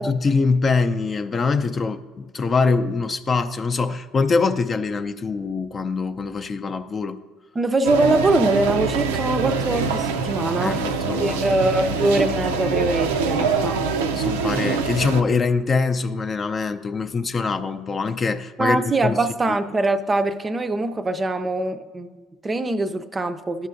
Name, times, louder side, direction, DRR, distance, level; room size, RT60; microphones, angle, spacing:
voice 1, 0.0-7.2 10.6-11.5 11.9-12.1 14.1-19.2 19.5-19.6, left 4 dB, 35° left, 0.4 m, -23 dB
voice 2, 7.6-10.9 11.2-13.8 18.6-23.7, right 2 dB, 25° right, 0.4 m, -23 dB
sound 1, 7.8-15.2, right 5 dB, 85° right, 0.4 m, -24 dB
12.5 x 5.5 x 2.6 m
hypercardioid pair, 65°, 0 cm